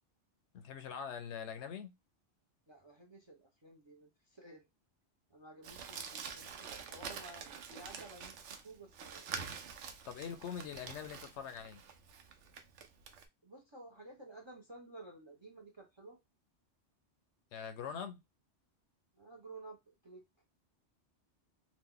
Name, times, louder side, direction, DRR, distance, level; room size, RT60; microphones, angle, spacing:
voice 1, 0.5-1.9 10.1-11.8 17.5-18.2, left 7 dB, 75° left, 0.8 m, -43 dB
voice 2, 2.7-4.7 5.3-9.3 13.4-16.2 19.1-20.2, right 2 dB, 35° right, 0.4 m, -54 dB
Crumpling crinkling, 5.6-13.2, right 6 dB, 80° right, 0.9 m, -47 dB
2.9 x 2.2 x 3.6 m
omnidirectional pair, 1.2 m